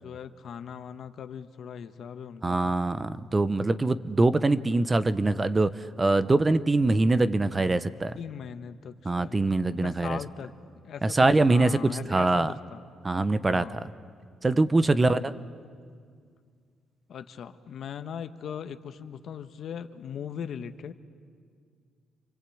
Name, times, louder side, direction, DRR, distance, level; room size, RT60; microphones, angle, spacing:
voice 1, 0.0-2.8 8.2-10.5 10.8-11.2 11.5-12.8 13.5-13.9 14.8-15.5 17.1-20.9, left 7 dB, 65° left, 9 dB, 1.2 m, -39 dB
voice 2, 2.4-5.7 6.0-8.1 9.0-10.2 11.0-11.7 12.1-12.5 13.0-13.8 14.4-15.3, right 2 dB, 25° right, 13 dB, 0.8 m, -23 dB
28.5 x 23.5 x 8.5 m, 2.1 s
cardioid pair, 90°, 0 cm